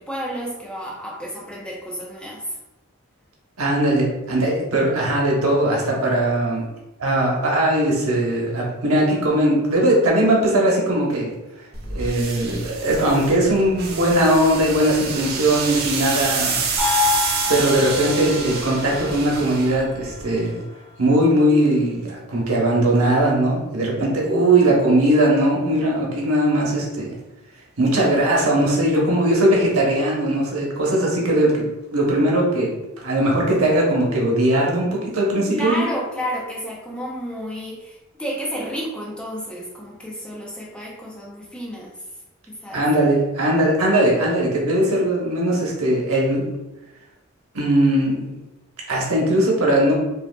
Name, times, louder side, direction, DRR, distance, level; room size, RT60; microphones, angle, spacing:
voice 1, 0.0-2.5 16.1-16.3 24.6-24.7 29.0-29.1 35.5-41.9 42.5-42.8, equal, 5° left, -4 dB, 0.6 m, -31 dB
voice 2, 3.6-6.7 7.0-11.3 11.9-16.6 17.5-20.6 21.0-27.1 27.8-31.6 31.9-32.7 33.0-35.9 42.7-46.5 47.5-48.4 48.9-50.0, right 1 dB, 85° right, -3 dB, 1.1 m, -19 dB
sound 1, 11.7-20.4, right 5 dB, 45° right, 0.5 m, -28 dB
sound 2, 16.8-21.4, left 4 dB, 25° right, 0.9 m, -28 dB
5.0 x 2.6 x 2.3 m, 0.98 s
head